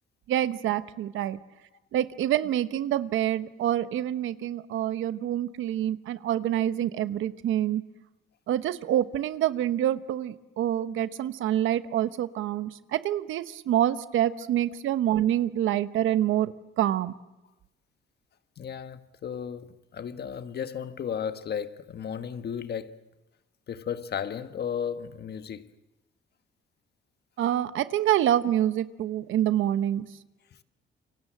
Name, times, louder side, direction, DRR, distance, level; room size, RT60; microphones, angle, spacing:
voice 1, 0.3-1.4 1.9-7.8 8.5-17.1 27.4-30.1, right 11 dB, 80° right, 1.0 m, -26 dB
voice 2, 18.6-23.0 23.7-25.7, left 8 dB, 55° left, 1.4 m, -34 dB
28.5 x 24.0 x 7.5 m
cardioid pair, 90°, 20 cm